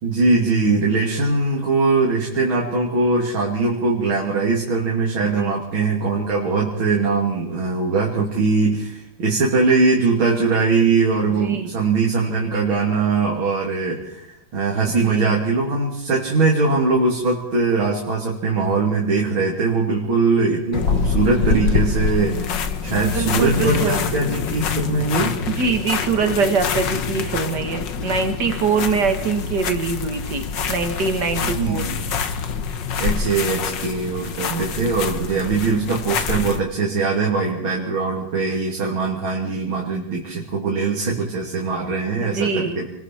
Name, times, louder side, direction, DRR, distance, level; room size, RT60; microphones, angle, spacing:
voice 1, 0.0-25.4 31.4-32.0 33.0-42.9, right 4 dB, 80° right, -2 dB, 3.5 m, -21 dB
voice 2, 11.2-11.7 15.1-15.4 23.0-24.1 25.5-31.8 34.5-34.9 35.4-35.6 42.2-42.8, right 5 dB, 55° right, 6 dB, 2.4 m, -24 dB
sound 1, 20.7-36.6, left 6 dB, 65° left, 1.8 m, -25 dB
28.5 x 21.5 x 4.5 m, 0.83 s
omnidirectional pair, 2.2 m